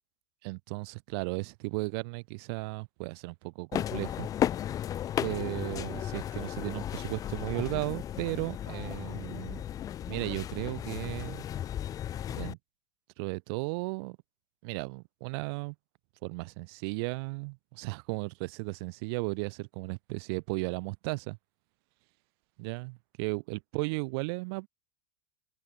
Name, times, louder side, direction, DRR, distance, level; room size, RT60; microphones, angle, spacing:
voice 1, 0.4-4.3 5.2-9.6 10.1-11.4 12.3-12.6 13.2-14.2 14.6-15.7 16.2-21.4 22.6-24.7, right 29 dB, 65° right, 1.1 m, -35 dB
sound 1, 3.7-12.5, left 10 dB, 25° left, 0.4 m, -35 dB
supercardioid pair, 125°, 14 cm